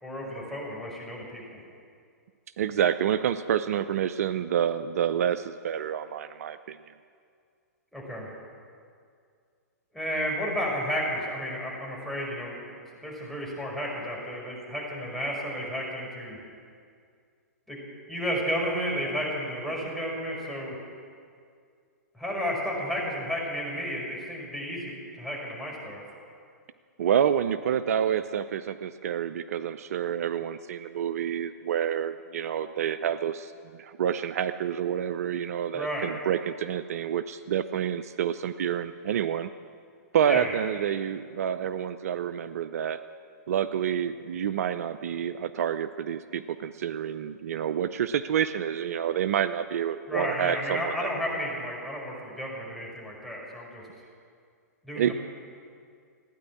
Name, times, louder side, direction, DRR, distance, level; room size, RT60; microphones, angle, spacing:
voice 1, 0.0-1.6 7.9-8.3 9.9-12.7 13.0-16.4 17.7-17.8 18.1-20.7 22.1-26.0 35.7-36.1 40.3-40.5 50.1-53.8 54.8-55.1, equal, ahead, -4 dB, 5.0 m, -32 dB
voice 2, 2.6-6.9 27.0-33.5 33.8-39.5 40.1-43.0 43.5-51.1 55.0-55.1, right 9 dB, 60° right, 12 dB, 0.5 m, -28 dB
16.0 x 9.8 x 8.6 m, 2.2 s
hypercardioid pair, 115°, 9 cm